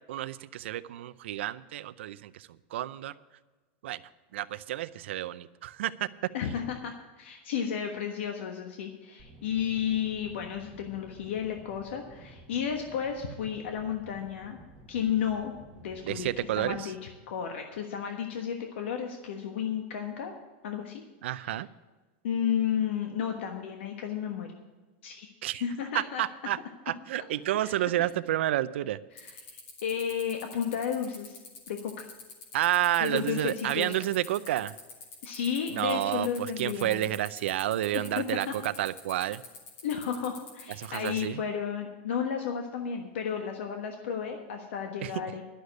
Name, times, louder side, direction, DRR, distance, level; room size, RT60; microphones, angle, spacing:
voice 1, 0.1-3.1 3.8-4.0 4.3-5.9 16.0-16.9 21.2-21.7 25.4-25.6 25.9-26.6 26.9-29.0 32.5-34.7 35.7-39.4 40.8-41.4 45.0-45.1, right 13 dB, 85° right, 14 dB, 0.5 m, -30 dB
voice 2, 6.3-14.6 14.9-15.5 15.8-16.3 16.6-20.3 20.6-21.0 21.4-21.5 22.2-24.5 25.0-25.3 25.6-26.2 27.6-27.7 29.1-31.4 31.7-32.1 33.0-33.9 35.2-37.1 37.9-38.5 39.8-45.4, left 8 dB, 85° left, 4 dB, 1.3 m, -33 dB
sound 1, 9.2-16.8, right 2 dB, 15° right, 1.2 m, -52 dB
sound 2, 29.2-41.2, left 4 dB, 45° left, 2.8 m, -45 dB
11.5 x 6.6 x 9.3 m, 1.2 s
supercardioid pair, 155°, 6 cm